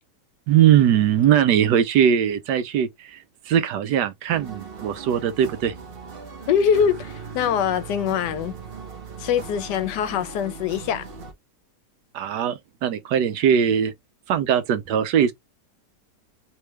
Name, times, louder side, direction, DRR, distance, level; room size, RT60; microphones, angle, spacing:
voice 1, 0.5-3.2 3.5-5.7 12.1-13.9 14.3-15.3, right 9 dB, 75° right, 1.2 m, -20 dB
sound 1, 4.3-11.3, right 5 dB, 45° right, 0.9 m, -38 dB
voice 2, 6.5-8.5 9.2-11.1, left 8 dB, 75° left, 1.2 m, -23 dB
3.3 x 3.2 x 3.2 m
omnidirectional pair, 1.9 m